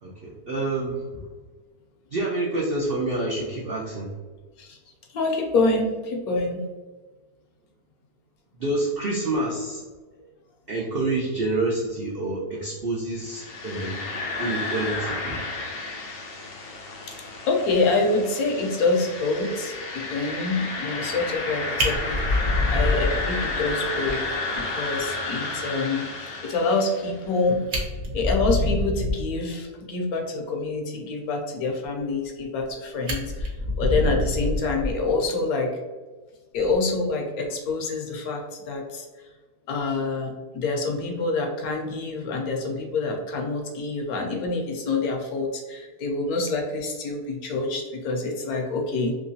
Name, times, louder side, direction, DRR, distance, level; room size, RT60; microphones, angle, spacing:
voice 1, 0.0-1.3 2.1-4.1 8.6-9.8 10.2-10.3 10.7-14.1 14.4-15.4, right 2 dB, 90° right, -4 dB, 0.5 m, -28 dB
voice 2, 5.1-6.6 17.1-17.2 17.5-22.4 22.7-24.3 24.5-27.6 28.1-35.8 36.5-39.1 39.7-49.2, left 3 dB, 70° left, 1 dB, 1.0 m, -26 dB
sound 1, 13.3-27.2, left 3 dB, 90° left, 0.5 m, -32 dB
Fire, 21.3-21.5 21.8-23.7 24.1-24.2 24.5-24.6 25.0-25.1 27.2-27.3 27.6-29.3 32.2-32.7 33.1-35.3 36.6-36.8, left 2 dB, 50° right, 1.0 m, -26 dB
3.6 x 3.0 x 2.7 m, 1.3 s
omnidirectional pair, 1.8 m